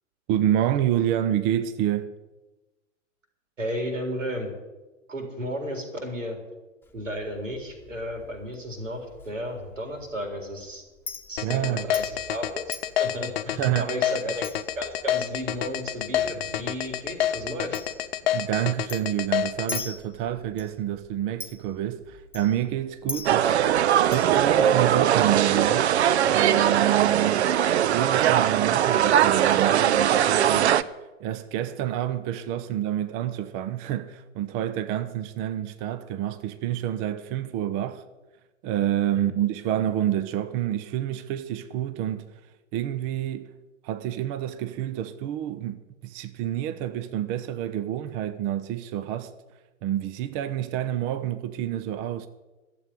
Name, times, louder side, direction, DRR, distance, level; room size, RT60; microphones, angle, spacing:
voice 1, 0.3-2.1 11.4-11.9 13.6-13.9 18.3-25.9 26.3-30.9 31.2-38.0 38.6-42.3 42.7-43.5 43.8-49.3 49.8-52.3, right 11 dB, 20° right, 0.4 m, -28 dB
voice 2, 3.6-4.5 5.1-6.4 6.9-10.8 11.3-17.8 39.1-39.3, equal, 75° right, 4.0 m, -33 dB
Chink clink, 6.8-25.0, left 3 dB, 5° left, 1.2 m, -44 dB
sound 1, 11.4-19.8, left 11 dB, 50° left, 0.9 m, -27 dB
sound 2, 23.2-30.8, right 10 dB, 60° right, 0.7 m, -21 dB
12.5 x 7.6 x 9.8 m
figure-of-eight pair, 100°, 38 cm